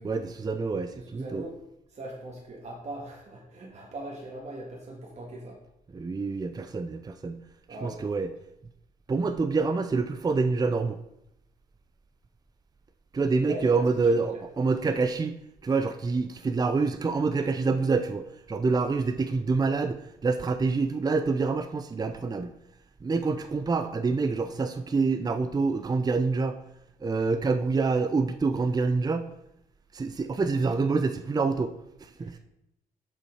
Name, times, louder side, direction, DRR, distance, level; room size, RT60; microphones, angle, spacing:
voice 1, 0.0-1.4 5.9-7.4 7.8-8.3 9.1-11.0 13.1-22.5 23.0-26.6 27.0-29.3 29.9-31.7 32.0-32.4, right 4 dB, 25° right, 9 dB, 0.5 m, -27 dB
voice 2, 0.9-1.6 1.9-5.6 7.7-8.1 13.4-14.4 32.2-32.4, right 1 dB, 50° right, -2 dB, 1.7 m, -40 dB
6.8 x 5.7 x 4.7 m, 0.82 s
cardioid pair, 80°, 15 cm